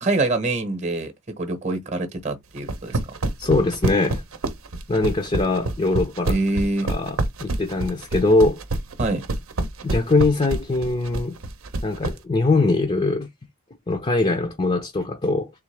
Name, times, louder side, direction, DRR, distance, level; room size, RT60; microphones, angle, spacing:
voice 1, 0.0-3.0 6.3-6.9 9.0-9.2, right 2 dB, 30° right, 0.9 m, -25 dB
sound 1, 2.6-12.2, right 2 dB, 65° right, 0.7 m, -26 dB
voice 2, 3.4-4.2 4.9-6.4 6.8-8.6 9.8-11.4 11.8-13.3 13.9-15.5, left 2 dB, 25° left, 0.6 m, -22 dB
3.7 x 3.1 x 3.3 m
head